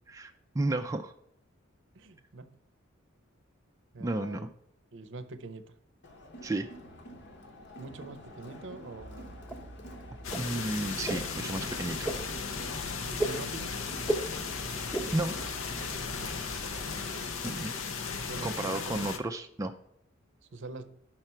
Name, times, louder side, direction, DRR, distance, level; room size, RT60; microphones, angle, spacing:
voice 1, 0.1-1.1 4.0-4.5 6.4-6.7 10.3-12.1 15.1-15.4 17.4-17.8 18.4-19.7, right 2 dB, 15° right, 5 dB, 0.3 m, -32 dB
voice 2, 1.9-2.6 3.9-4.5 4.9-5.8 7.8-9.4 13.1-13.7 16.2-16.4 18.3-19.1 20.5-21.0, right 2 dB, 65° right, 11 dB, 0.6 m, -44 dB
Crowd, 6.0-17.6, left 1 dB, 60° left, 1.0 m, -49 dB
sound 1, 9.0-17.3, right 2 dB, 5° left, 0.8 m, -39 dB
sound 2, 10.2-19.2, left 5 dB, 80° left, 0.7 m, -36 dB
5.8 x 4.4 x 5.5 m, 0.72 s
head